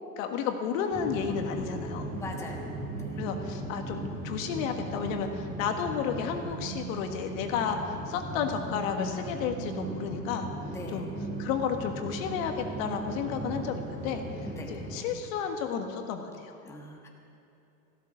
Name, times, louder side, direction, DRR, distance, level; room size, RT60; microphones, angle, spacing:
voice 1, 0.0-2.1 3.2-7.8 8.1-10.5 10.9-11.1 11.4-14.2 14.7-16.6, left 7 dB, 55° left, 5 dB, 1.7 m, -32 dB
sound 1, 0.9-15.0, right 2 dB, 20° right, 2.3 m, -37 dB
voice 2, 2.1-2.7 3.0-3.2 10.7-11.1 14.4-14.7 16.6-17.1, left 2 dB, 5° left, 0 dB, 1.3 m, -41 dB
14.5 x 12.5 x 6.2 m, 2.8 s
hypercardioid pair, 130°, 49 cm